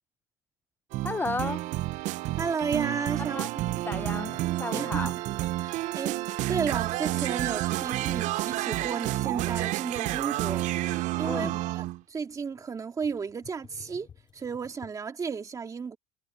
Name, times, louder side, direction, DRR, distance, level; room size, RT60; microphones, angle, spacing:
sound 1, 0.9-12.0, right 17 dB, 55° right, 0.5 m, -30 dB
voice 1, 1.0-1.6 3.3-3.5 3.9-5.1 11.2-11.6, left 3 dB, 15° left, 0.6 m, -33 dB
sound 2, 1.1-2.1 2.6-4.6 5.0-6.3 6.6-7.4 7.9-9.6 10.0-15.0, left 8 dB, 35° left, 4.0 m, -56 dB
voice 2, 2.4-3.9 4.7-5.2 5.6-14.1 14.3-16.0, right 5 dB, 20° right, 2.1 m, -34 dB
cardioid pair, 140°, 15 cm